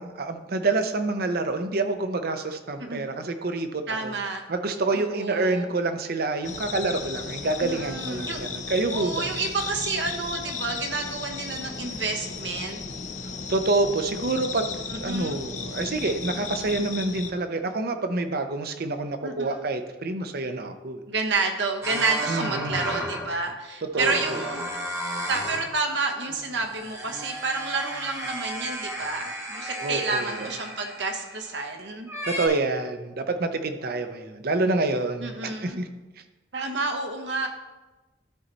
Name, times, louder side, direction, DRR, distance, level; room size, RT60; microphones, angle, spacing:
voice 1, 0.0-4.1 4.5-9.3 13.5-21.0 22.3-22.8 23.9-24.4 29.8-30.5 32.3-35.9, right 2 dB, 60° right, 7 dB, 0.7 m, -27 dB
voice 2, 3.9-4.4 4.9-5.7 7.6-8.4 8.9-12.8 14.9-15.4 19.2-19.6 21.1-24.7 25.3-32.1 35.2-35.8 36.5-37.5, right 3 dB, 75° right, 4 dB, 1.1 m, -30 dB
sound 1, 6.4-17.3, left 5 dB, 45° left, 0.6 m, -35 dB
sound 2, 21.8-23.4 23.9-25.7 26.1-31.6 32.1-32.5, equal, 15° right, 1.3 m, -34 dB
12.5 x 4.2 x 4.1 m, 1.1 s
head